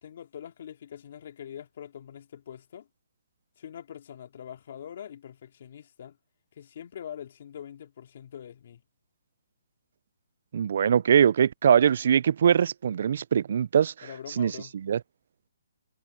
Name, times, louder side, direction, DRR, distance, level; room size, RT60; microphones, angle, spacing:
voice 1, 0.0-2.9 3.6-6.2 6.6-8.8 14.0-14.7, left 9 dB, 50° left, 2.6 m, -43 dB
voice 2, 10.5-14.1 14.4-14.5 14.8-15.0, right 8 dB, 55° right, 0.3 m, -22 dB
hypercardioid pair, 160°, 0 cm